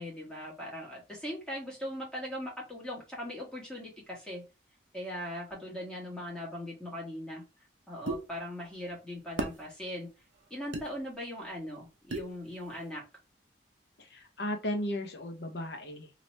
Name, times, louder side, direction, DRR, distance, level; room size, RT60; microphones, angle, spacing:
voice 1, 0.0-4.4 4.9-7.4 7.9-10.1 10.5-13.0, left 1 dB, 5° left, -4 dB, 1.5 m, -40 dB
sound 1, 8.1-8.2 9.4-9.6 10.7-10.9 12.1-12.3, right 2 dB, 80° right, 0.7 m, -33 dB
voice 2, 14.0-16.1, left 1 dB, 65° left, 5 dB, 0.9 m, -35 dB
2.9 x 2.9 x 3.1 m, 0.30 s
head